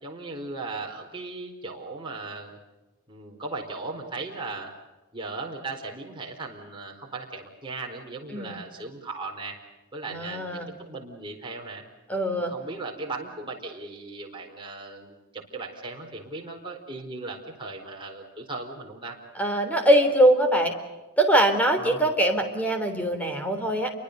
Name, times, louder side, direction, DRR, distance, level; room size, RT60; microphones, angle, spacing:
voice 1, 0.0-2.6 3.1-4.7 5.1-9.6 9.9-11.8 12.4-19.2 21.8-22.1, right 3 dB, 20° right, 0 dB, 4.5 m, -37 dB
voice 2, 10.1-10.7 12.1-12.5 19.4-20.7 21.2-23.9, right 1 dB, 5° left, 6 dB, 3.6 m, -22 dB
29.0 x 24.0 x 6.8 m, 1.1 s
head